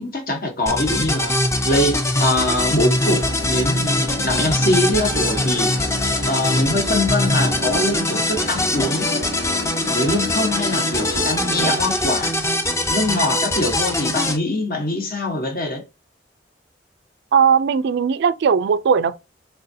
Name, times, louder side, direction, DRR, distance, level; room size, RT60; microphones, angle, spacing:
voice 1, 0.0-1.3 1.6-5.7 6.3-9.1 9.9-12.4 12.9-15.8, left 1 dB, 55° left, 1.2 m, -23 dB
sound 1, 0.7-14.4, left 1 dB, 15° left, 0.5 m, -22 dB
sound 2, 2.9-11.8, left 2 dB, 80° left, 1.0 m, -32 dB
voice 2, 17.3-19.2, right 6 dB, 65° right, 0.3 m, -18 dB
3.8 x 3.5 x 2.7 m
head